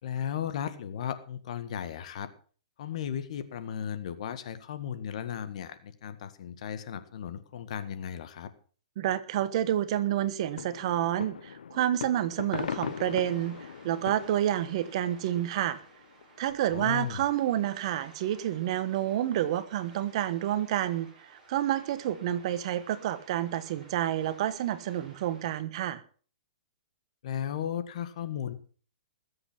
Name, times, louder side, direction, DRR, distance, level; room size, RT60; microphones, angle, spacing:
voice 1, 0.0-2.3 2.8-8.5 16.7-17.2 27.2-28.5, left 9 dB, 55° left, 12 dB, 1.8 m, -35 dB
voice 2, 9.0-15.8 16.4-21.1 21.5-26.0, right 12 dB, 45° right, 14 dB, 1.3 m, -29 dB
sound 1, 10.5-15.8 16.2-16.3 16.5-16.6, left 7 dB, 90° left, 0.7 m, -39 dB
sound 2, 12.5-25.6, right 3 dB, 20° right, 6.5 m, -55 dB
20.0 x 7.9 x 5.8 m, 0.40 s
hypercardioid pair, 160°, 4 cm